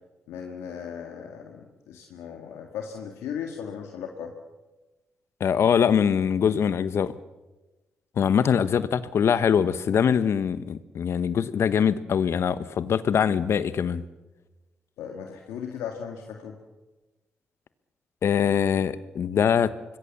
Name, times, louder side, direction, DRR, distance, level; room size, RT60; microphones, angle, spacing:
voice 1, 0.3-4.3 15.0-16.6, left 7 dB, 90° left, 2.0 m, -37 dB
voice 2, 5.4-7.1 8.2-14.0 18.2-19.7, left 7 dB, 70° left, 1.2 m, -23 dB
25.5 x 21.5 x 7.2 m
supercardioid pair, 45°, 5 cm